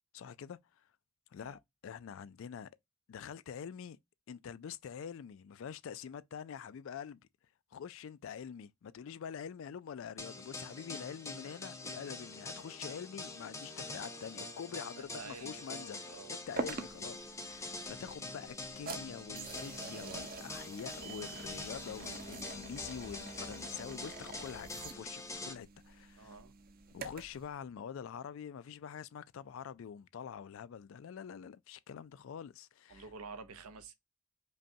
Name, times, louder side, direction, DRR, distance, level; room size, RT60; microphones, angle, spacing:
voice 1, 0.1-0.9 1.3-2.7 3.1-4.0 4.3-7.3 7.7-16.0 16.3-26.3 26.9-33.1, left 7 dB, 60° left, 0.3 m, -46 dB
sound 1, 10.2-25.5, left 2 dB, 15° left, 0.5 m, -45 dB
voice 2, 15.0-16.3 26.2-26.5 32.9-33.9, right 4 dB, 85° right, 0.7 m, -50 dB
sound 2, 16.6-27.4, right 4 dB, 40° right, 0.6 m, -46 dB
5.2 x 2.2 x 2.6 m
head